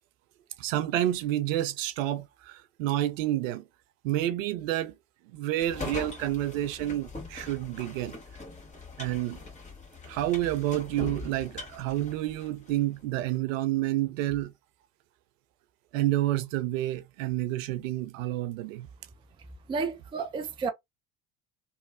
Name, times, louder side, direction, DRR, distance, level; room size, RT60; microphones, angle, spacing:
voice 1, 0.6-3.6 4.0-4.9 5.3-8.2 9.0-9.4 10.1-14.5 15.9-18.9, right 14 dB, 65° right, 0.6 m, -29 dB
sound 1, 5.6-12.8, left 3 dB, 15° left, 1.6 m, -42 dB
voice 2, 19.7-20.7, right 5 dB, 15° right, 0.4 m, -31 dB
3.1 x 2.2 x 2.4 m
figure-of-eight pair, 65°, 43 cm